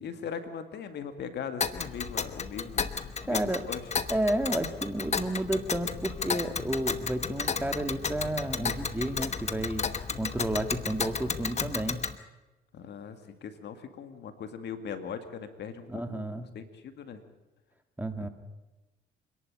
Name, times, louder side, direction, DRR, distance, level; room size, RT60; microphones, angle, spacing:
voice 1, 0.0-2.9 3.2-3.8 12.7-17.2 18.2-18.3, left 7 dB, 65° left, 8 dB, 2.2 m, -40 dB
Tick, 1.6-12.2, left 5 dB, 35° left, 1.2 m, -33 dB
voice 2, 3.2-3.6 4.1-9.8 10.2-12.1 15.9-16.5 18.0-18.3, right 1 dB, 10° right, 8 dB, 1.9 m, -31 dB
26.5 x 11.5 x 9.9 m, 1.1 s
cardioid pair, 80°, 19 cm